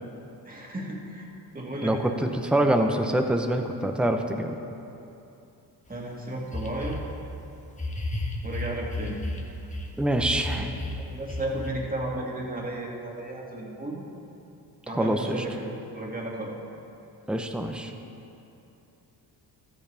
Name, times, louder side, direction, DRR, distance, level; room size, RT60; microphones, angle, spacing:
voice 1, 0.4-2.1 5.9-7.0 8.4-9.2 10.6-10.7 11.1-14.0 14.9-15.7 15.9-16.5, right 1 dB, 20° right, -2 dB, 2.3 m, -34 dB
voice 2, 1.8-4.6 10.0-10.7 14.9-15.4 17.3-17.9, right 1 dB, ahead, 4 dB, 0.9 m, -25 dB
sound 1, 5.9-6.0 6.5-7.1 7.7-9.9 10.2-11.7, left 2 dB, 20° left, 1.5 m, -32 dB
14.0 x 13.5 x 3.5 m, 2.8 s
cardioid pair, 80°, 39 cm